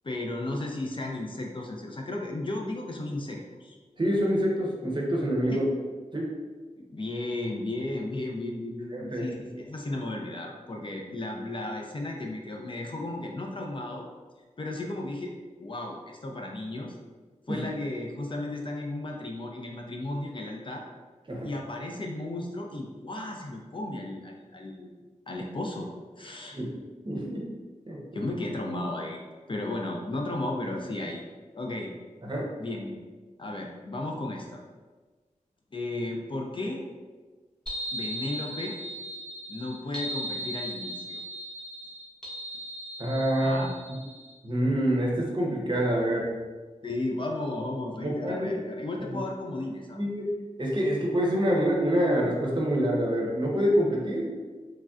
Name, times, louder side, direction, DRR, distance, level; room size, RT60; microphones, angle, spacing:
voice 1, 0.0-3.8 5.5-5.6 6.8-14.0 14.6-15.3 15.6-17.0 17.5-20.8 21.4-25.0 25.3-25.9 26.2-26.6 28.1-31.2 31.5-31.9 32.6-33.0 33.4-34.6 35.7-36.8 37.9-38.8 39.5-41.2 43.4-43.7 46.8-50.0, left 2 dB, 40° left, 0 dB, 0.3 m, -34 dB
voice 2, 4.0-5.7 6.1-6.3 8.9-9.2 17.5-17.6 21.3-21.5 26.5-26.7 27.1-27.5 27.9-28.0 32.2-32.5 43.0-43.7 44.4-46.3 48.0-48.6 49.9-50.3 50.6-54.3, equal, 35° right, -2 dB, 0.6 m, -26 dB
sound 1, 37.7-44.3, right 1 dB, 5° left, 0.9 m, -37 dB
3.2 x 2.5 x 2.3 m, 1.4 s
wide cardioid pair, 80°, 13 cm